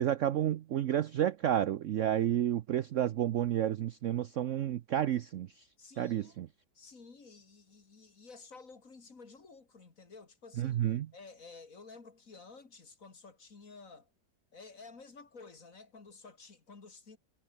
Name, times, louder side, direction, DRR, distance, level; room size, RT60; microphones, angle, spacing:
voice 1, 0.0-5.6 6.0-6.5 10.6-11.1, right 11 dB, 65° right, 0.8 m, -30 dB
voice 2, 5.8-6.5 6.7-10.8 11.1-14.1 14.5-17.2, left 4 dB, 50° left, 3.0 m, -53 dB
omnidirectional pair, 1.9 m